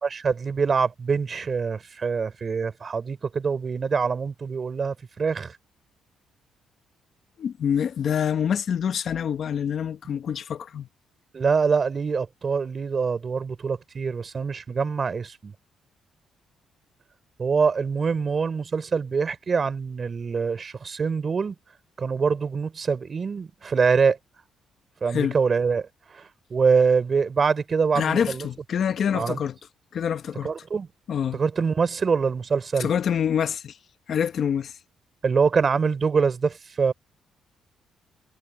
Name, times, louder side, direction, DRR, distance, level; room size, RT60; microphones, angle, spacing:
voice 1, 0.0-5.6 11.3-15.5 17.4-21.5 22.0-24.2 25.0-28.5 29.1-29.4 30.4-30.9 31.3-32.9 35.2-36.9, right 5 dB, 40° right, 4.3 m, -24 dB
voice 2, 7.4-10.9 25.1-25.3 27.9-29.5 29.9-30.5 31.1-31.4 32.8-33.8 34.1-34.8, left 8 dB, 60° left, 1.2 m, -26 dB
cardioid pair, 90°, 0 cm